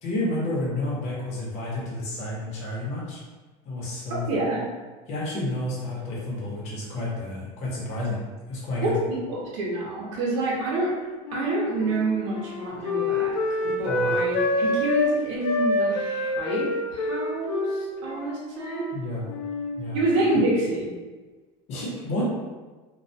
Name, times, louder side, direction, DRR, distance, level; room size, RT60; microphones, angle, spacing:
voice 1, 0.0-3.2 3.6-4.2 5.1-8.2 8.5-8.9 13.9-14.2 18.9-19.3 19.8-20.0 21.7-22.2, left 1 dB, 45° left, -5 dB, 0.9 m, -30 dB
voice 2, 4.3-4.6 8.8-10.9 11.3-13.4 13.6-18.8 19.9-20.9, right 2 dB, 75° right, -4 dB, 0.8 m, -27 dB
Wind instrument woodwind instrument, 11.2-15.1 15.4-19.0 19.3-19.8, left 2 dB, 85° left, 0.4 m, -27 dB
2.3 x 2.2 x 2.7 m, 1.3 s
cardioid pair, 145°, 15 cm